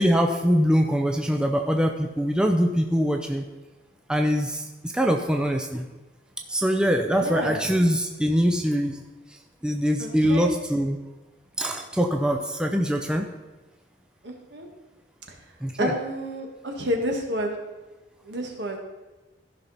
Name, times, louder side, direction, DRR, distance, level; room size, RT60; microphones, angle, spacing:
voice 1, 0.0-3.4 4.1-5.9 6.5-9.0 9.3-11.0 11.6-13.3 15.6-15.9, equal, 5° right, 3 dB, 0.5 m, -23 dB
voice 2, 7.1-7.6 10.0-10.5 14.2-14.7 15.8-17.6 18.2-18.8, equal, 60° right, 2 dB, 1.6 m, -29 dB
14.0 x 5.9 x 4.1 m, 1.2 s
head